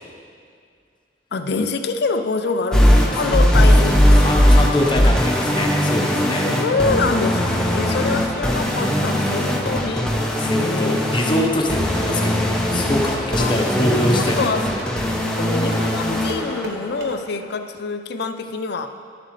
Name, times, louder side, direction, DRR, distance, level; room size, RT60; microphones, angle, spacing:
voice 1, 1.3-4.6 6.4-10.1 10.5-11.0 13.4-14.6 15.4-18.9, left 4 dB, 65° left, 8 dB, 0.5 m, -26 dB
sound 1, 2.7-16.8, equal, 5° left, 0.8 m, -19 dB
voice 2, 4.1-6.5 7.9-8.3 10.3-12.4 12.7-14.5, left 1 dB, 25° left, 0 dB, 1.0 m, -24 dB
sound 2, 9.9-17.1, equal, 65° right, 1.1 m, -35 dB
11.0 x 7.5 x 3.2 m, 2.2 s
head